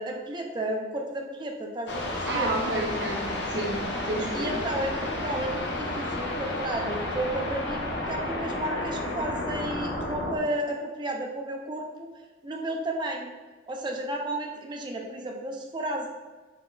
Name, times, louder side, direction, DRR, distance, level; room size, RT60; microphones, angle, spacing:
voice 1, 0.0-2.5 4.3-12.1 12.4-13.3 13.7-16.1, right 1 dB, 25° right, 1 dB, 0.5 m, -32 dB
sound 1, 1.9-10.4, left 1 dB, 85° left, 0.7 m, -31 dB
voice 2, 2.3-4.7, right 1 dB, 80° right, -2 dB, 0.8 m, -31 dB
4.2 x 4.1 x 2.3 m, 1.3 s
head